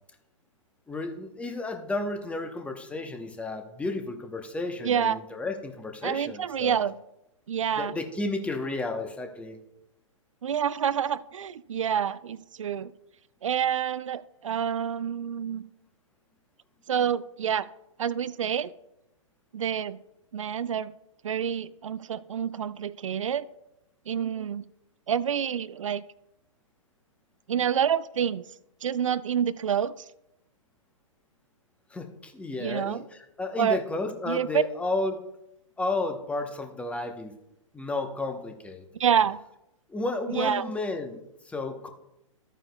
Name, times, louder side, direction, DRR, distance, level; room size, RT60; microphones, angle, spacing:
voice 1, 0.9-6.8 7.8-9.6 31.9-35.3 35.8-37.3 37.7-38.8 39.9-41.9, left 2 dB, 5° left, 6 dB, 0.9 m, -32 dB
voice 2, 4.8-5.2 6.0-6.9 7.5-7.9 10.4-12.9 13.4-15.6 16.9-17.7 18.0-18.7 19.5-20.0 20.3-20.9 21.2-23.5 24.1-24.6 25.1-26.0 27.5-28.4 28.8-29.9 32.6-33.0 33.6-33.8 34.3-34.6 39.0-39.4 40.3-40.6, right 8 dB, 70° right, 16 dB, 0.4 m, -27 dB
13.5 x 8.9 x 2.3 m, 0.85 s
figure-of-eight pair, 120°, 17 cm